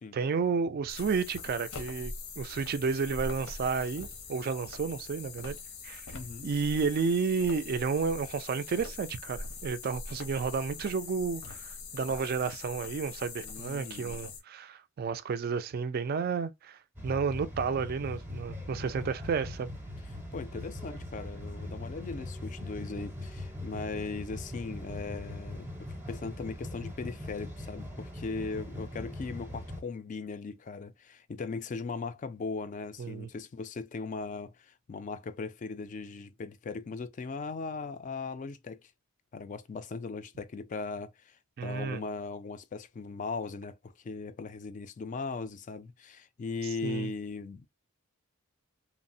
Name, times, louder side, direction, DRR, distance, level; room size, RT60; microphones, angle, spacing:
voice 1, 0.1-5.6 5.8-6.0 6.4-19.7 33.0-33.3 41.6-42.0 46.8-47.1, right 5 dB, 45° right, 0.3 m, -31 dB
sound 1, 0.9-14.4, left 4 dB, 90° left, 0.8 m, -43 dB
voice 2, 6.1-6.5 13.4-14.2 20.3-38.9 39.3-47.7, left 4 dB, 35° left, 0.3 m, -39 dB
sound 2, 17.0-29.8, left 1 dB, 10° right, 0.6 m, -41 dB
3.0 x 2.0 x 2.6 m
head